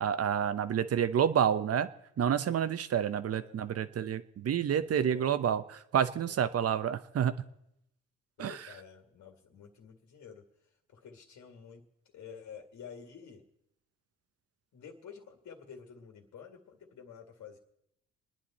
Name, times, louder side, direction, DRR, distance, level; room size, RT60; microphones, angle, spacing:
voice 1, 0.0-1.9 2.2-7.3 8.4-8.6, right 8 dB, 55° right, 12 dB, 1.0 m, -29 dB
voice 2, 3.2-3.6 4.7-5.3 6.2-6.5 8.4-10.4 10.9-11.8 12.1-13.4 14.7-17.6, left 7 dB, 70° left, 3 dB, 2.2 m, -50 dB
28.5 x 10.5 x 4.3 m, 0.81 s
cardioid pair, 90°, 30 cm